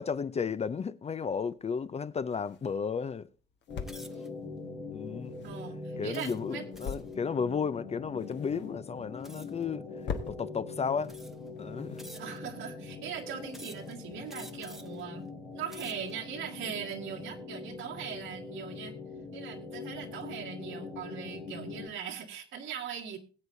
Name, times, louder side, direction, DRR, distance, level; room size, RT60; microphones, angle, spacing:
voice 1, 0.0-3.3 4.9-5.4 6.0-9.9 10.3-11.1 11.6-12.1, left 6 dB, 30° left, 0.5 m, -33 dB
sound 1, 2.1-12.7, left 6 dB, 65° left, 1.4 m, -46 dB
sound 2, 3.7-21.9, left 4 dB, 90° left, 3.0 m, -43 dB
sound 3, 3.8-4.3 4.9-5.2 6.1-7.1 9.2-9.6 10.5-10.6 11.0-11.5 12.0-12.6 13.5-13.9 14.3-15.0 15.5-16.1, equal, ahead, 1.0 m, -50 dB
voice 2, 5.4-6.7 12.1-15.3 15.5-18.9 19.3-23.2, right 8 dB, 80° right, 2.0 m, -40 dB
20.5 x 8.1 x 2.7 m
cardioid pair, 90°, 20 cm